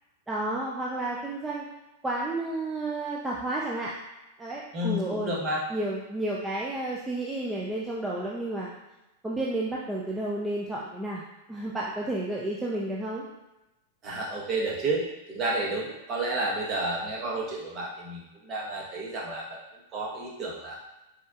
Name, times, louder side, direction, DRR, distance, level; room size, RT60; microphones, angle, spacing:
voice 1, 0.3-1.6 2.0-3.9 4.4-5.3 5.7-8.7 9.2-11.2 11.5-13.2, right 2 dB, 10° right, -5 dB, 0.6 m, -31 dB
voice 2, 4.7-5.6 14.0-19.6 19.9-20.8, right 2 dB, 35° right, -3 dB, 1.2 m, -31 dB
4.4 x 4.3 x 2.5 m, 0.97 s
hypercardioid pair, 125°, 0 cm